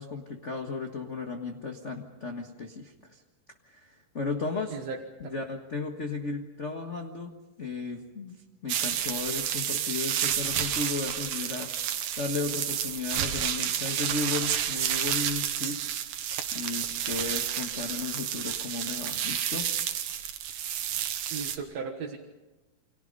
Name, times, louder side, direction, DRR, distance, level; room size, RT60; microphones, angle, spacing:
voice 1, 0.0-3.2 3.6-4.8 5.2-8.4 8.6-11.7 12.2-16.2 16.5-19.7, left 4 dB, 45° left, 4 dB, 0.9 m, -35 dB
voice 2, 4.7-5.4 21.3-22.2, right 5 dB, 60° right, 1 dB, 2.4 m, -37 dB
sound 1, 8.7-21.6, right 10 dB, 80° right, 2.9 m, -30 dB
29.5 x 25.5 x 5.4 m, 1.1 s
omnidirectional pair, 3.7 m